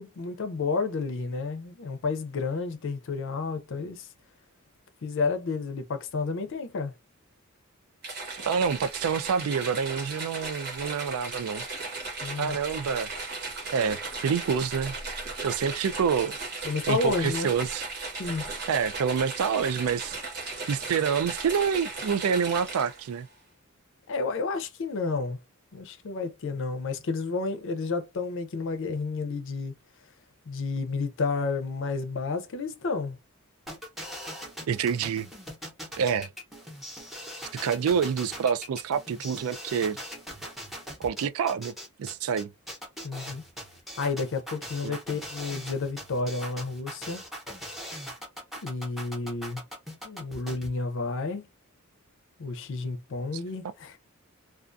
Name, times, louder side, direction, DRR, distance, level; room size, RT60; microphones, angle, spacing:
voice 1, 0.0-4.1 5.0-6.9 12.2-12.6 16.6-17.5 18.2-18.5 24.1-25.4 25.7-29.7 30.5-33.2 43.0-43.4 44.0-47.2 48.6-49.6 50.0-51.5 52.4-54.0, left 4 dB, 60° left, 0.5 m, -31 dB
sound 1, 8.0-23.1, right 3 dB, 50° right, 1.1 m, -36 dB
voice 2, 8.4-11.6 12.4-13.1 13.7-14.9 15.4-16.4 16.9-17.8 18.7-20.2 20.7-23.3 34.7-35.3 36.0-36.3 37.6-40.0 41.0-41.7 42.0-42.5 44.8-45.0, right 6 dB, 70° right, 0.3 m, -27 dB
sound 2, 33.7-50.7, equal, ahead, 0.8 m, -41 dB
2.4 x 2.3 x 2.5 m
head